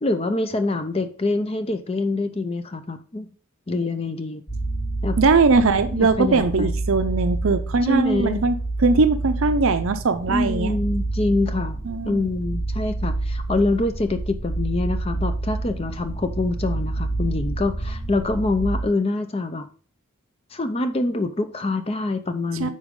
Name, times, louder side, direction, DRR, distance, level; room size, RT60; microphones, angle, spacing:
voice 1, 0.0-3.3 3.7-4.4 5.0-5.2 5.9-6.7 7.8-8.4 10.3-19.7 20.5-22.7, left 2 dB, 25° left, 0.5 m, -25 dB
sound 1, 4.5-18.8, right 2 dB, 75° left, 3.0 m, -28 dB
voice 2, 5.2-10.8 11.9-12.3 22.6-22.7, right 4 dB, 65° right, 0.6 m, -20 dB
9.9 x 4.0 x 3.7 m
head